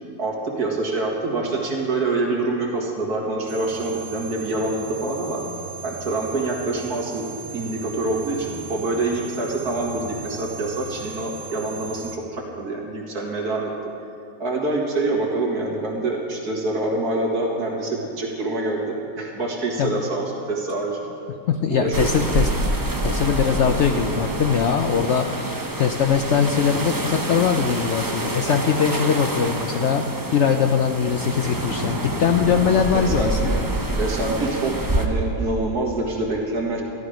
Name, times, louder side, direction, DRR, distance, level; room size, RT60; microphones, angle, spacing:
voice 1, 0.2-5.4 5.8-7.2 7.5-13.7 14.4-21.0 21.7-22.3 32.9-33.5 34.0-36.8, right 2 dB, 70° right, -1 dB, 2.3 m, -26 dB
sound 1, 3.5-12.2, right 5 dB, 85° right, 1.6 m, -37 dB
voice 2, 21.5-22.5 23.0-30.0 30.3-33.6, left 7 dB, 70° left, 5 dB, 0.6 m, -21 dB
sound 2, 21.9-35.1, right 1 dB, 20° right, 0.5 m, -27 dB
13.5 x 12.0 x 5.0 m, 2.7 s
omnidirectional pair, 1.8 m